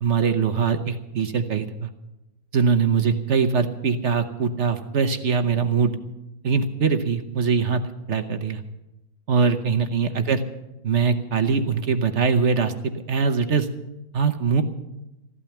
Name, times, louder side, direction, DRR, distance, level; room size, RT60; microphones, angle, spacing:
voice 1, 0.0-1.9 2.5-6.0 6.4-7.8 8.1-8.6 9.3-10.4 10.8-13.7 14.1-14.6, right 5 dB, 50° right, 8 dB, 1.1 m, -22 dB
15.0 x 12.0 x 7.1 m, 0.93 s
omnidirectional pair, 1.7 m